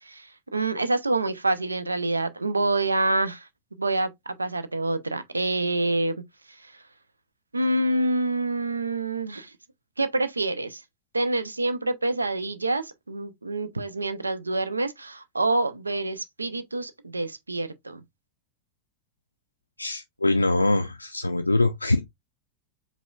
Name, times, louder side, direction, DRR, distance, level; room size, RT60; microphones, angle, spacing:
voice 1, 0.0-3.5 3.8-4.1 4.4-6.2 6.5-6.8 7.5-9.5 10.0-10.8 11.1-18.0, right 2 dB, 80° right, 0.5 m, -27 dB
voice 2, 19.8-22.0, left 2 dB, 85° left, 0.3 m, -23 dB
4.9 x 3.4 x 2.3 m
figure-of-eight pair, 90°, 0 cm